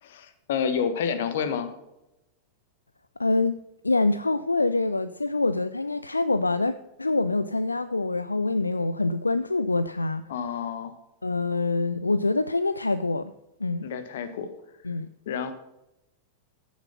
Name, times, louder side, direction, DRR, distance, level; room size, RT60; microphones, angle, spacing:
voice 1, 0.0-1.7 10.3-11.0 13.8-14.5 15.3-15.5, left 7 dB, 55° left, 11 dB, 1.3 m, -29 dB
voice 2, 3.2-3.5 3.8-6.7 7.0-10.2 11.2-13.3 13.6-13.9 14.8-15.1, left 3 dB, 80° left, 14 dB, 0.4 m, -25 dB
14.5 x 7.1 x 5.6 m, 0.91 s
figure-of-eight pair, 90°, 0 cm